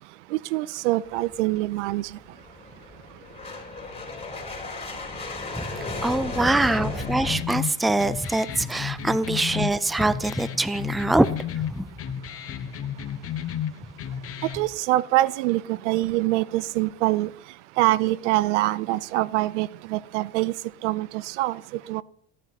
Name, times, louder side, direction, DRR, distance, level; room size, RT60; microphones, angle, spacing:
voice 1, 0.3-2.1 14.5-17.3 17.8-20.5 20.8-21.6 21.9-22.0, right 17 dB, 85° right, 0.5 m, -24 dB
sound 1, 1.1-7.4, left 2 dB, 15° left, 3.8 m, -35 dB
voice 2, 6.0-11.3 11.6-11.9, right 2 dB, ahead, 0.4 m, -24 dB
sound 2, 6.7-14.7, left 9 dB, 40° left, 1.0 m, -33 dB
14.0 x 10.0 x 2.9 m
supercardioid pair, 100°, 35 cm